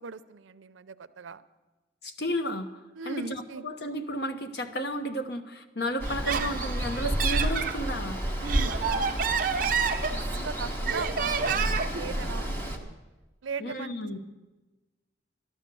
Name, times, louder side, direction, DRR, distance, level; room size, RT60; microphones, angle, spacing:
voice 1, 0.0-1.4 2.9-3.6 8.4-9.2 9.7-13.0 13.4-14.0, right 5 dB, 85° right, 12 dB, 0.6 m, -39 dB
voice 2, 2.0-2.7 3.0-8.2 13.6-14.2, equal, 60° left, 7 dB, 1.1 m, -32 dB
Water, 6.0-12.8, right 1 dB, 10° left, 1.4 m, -31 dB
Laughter, 6.1-7.8 8.3-10.5 10.9-12.0, right 6 dB, 45° right, 0.8 m, -29 dB
12.5 x 12.0 x 6.9 m, 1.1 s
head